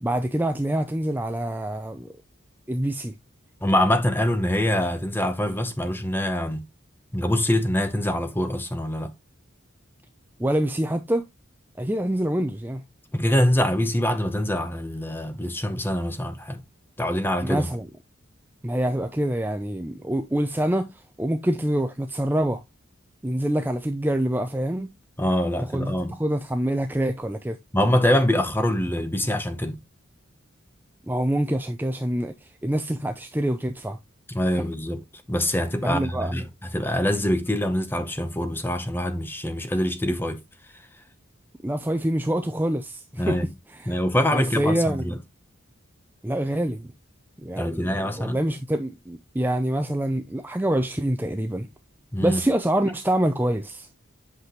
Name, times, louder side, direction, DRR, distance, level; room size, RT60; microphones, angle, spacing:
voice 1, 0.0-2.1 2.7-3.1 10.4-11.3 11.8-12.8 17.4-17.9 18.6-22.6 23.2-24.9 25.7-27.6 31.1-34.0 34.6-34.7 35.8-36.4 41.6-43.4 43.7-44.0 44.3-45.1 46.2-46.9 47.4-51.7 52.2-53.9, right 1 dB, 10° right, 0.5 m, -26 dB
voice 2, 3.6-6.6 7.1-9.1 13.1-16.6 17.0-17.7 25.2-26.2 27.7-29.8 34.3-35.0 35.3-40.4 43.2-43.5 43.9-45.2 47.6-48.4 52.1-52.4, left 1 dB, 10° left, 0.9 m, -24 dB
8.2 x 6.0 x 3.0 m
head